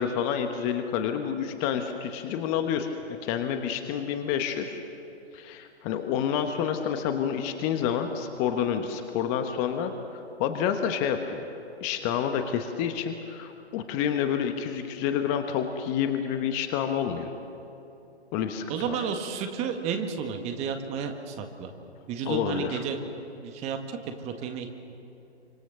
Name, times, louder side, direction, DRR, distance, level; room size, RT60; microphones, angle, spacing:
voice 1, 0.0-2.9 3.2-4.8 5.3-11.5 11.8-17.3 18.3-19.0 22.2-22.8, left 8 dB, 20° left, 7 dB, 1.2 m, -29 dB
voice 2, 18.7-21.7 22.1-23.0 23.4-24.7, right 7 dB, 20° right, 6 dB, 1.7 m, -32 dB
27.5 x 25.5 x 6.7 m, 2.8 s
figure-of-eight pair, 130°, 34 cm